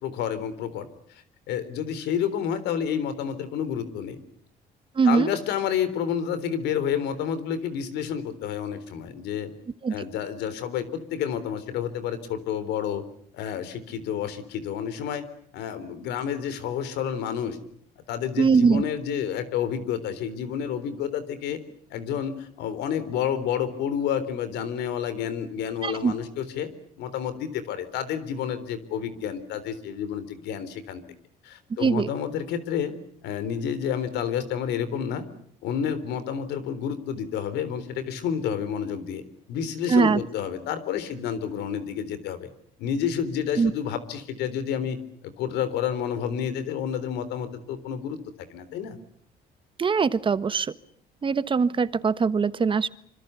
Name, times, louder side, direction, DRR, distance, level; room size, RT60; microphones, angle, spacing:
voice 1, 0.0-4.2 5.1-9.5 9.9-13.0 13.3-15.3 15.5-17.6 18.1-21.6 21.9-26.7 27.0-31.0 31.4-32.9 33.2-35.2 35.6-39.2 39.5-42.5 42.8-45.0 45.4-48.2 48.5-49.0, left 8 dB, 85° left, 14 dB, 3.8 m, -29 dB
voice 2, 4.9-5.3 9.8-9.9 18.4-18.8 25.8-26.1 31.8-32.1 39.9-40.2 43.6-43.7 49.8-50.7 51.2-52.9, right 5 dB, 30° right, 14 dB, 1.3 m, -21 dB
26.0 x 25.5 x 8.2 m, 0.63 s
cardioid pair, 110°, 17 cm